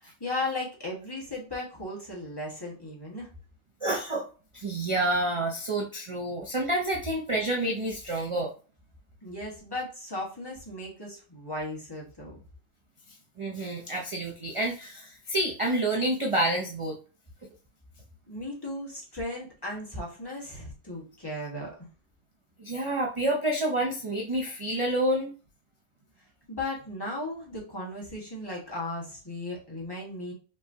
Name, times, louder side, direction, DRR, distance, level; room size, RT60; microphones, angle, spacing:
voice 1, 0.0-3.3 9.2-12.4 18.3-21.9 26.5-30.3, left 2 dB, 20° left, -5 dB, 1.5 m, -36 dB
voice 2, 3.8-4.3 4.5-8.5 13.4-17.0 22.6-25.3, right 1 dB, 35° right, -1 dB, 0.6 m, -28 dB
5.5 x 3.1 x 2.7 m, 0.37 s
omnidirectional pair, 1.2 m